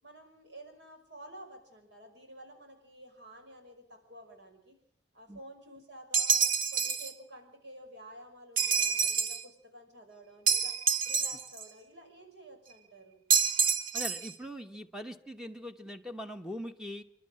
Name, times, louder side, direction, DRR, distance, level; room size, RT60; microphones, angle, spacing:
voice 1, 0.0-4.8 5.1-6.4 6.7-10.7 11.1-13.2, right 1 dB, 70° right, 4 dB, 5.4 m, -51 dB
sound 1, 6.1-7.1 8.6-9.4 10.5-11.6 13.3-14.3, right 6 dB, 50° right, 1.3 m, -27 dB
voice 2, 13.9-17.0, equal, 5° right, 6 dB, 1.0 m, -41 dB
28.0 x 11.5 x 8.7 m, 0.69 s
head